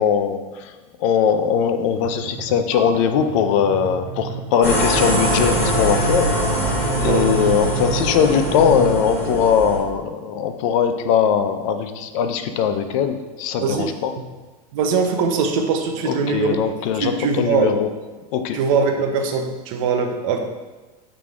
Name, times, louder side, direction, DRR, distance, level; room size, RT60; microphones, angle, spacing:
voice 1, 0.0-6.7 7.0-14.1 16.0-17.9 18.3-18.6, left 7 dB, 55° left, 8 dB, 0.6 m, -20 dB
sound 1, 2.0-9.0, right 7 dB, 20° right, 0.9 m, -31 dB
sound 2, 4.6-9.8, equal, 15° left, 2.1 m, -22 dB
voice 2, 13.6-13.9 14.7-16.6 16.9-17.7 18.5-20.4, right 5 dB, 60° right, 4 dB, 0.9 m, -21 dB
7.8 x 3.7 x 3.6 m, 1.2 s
supercardioid pair, 160°, 20 cm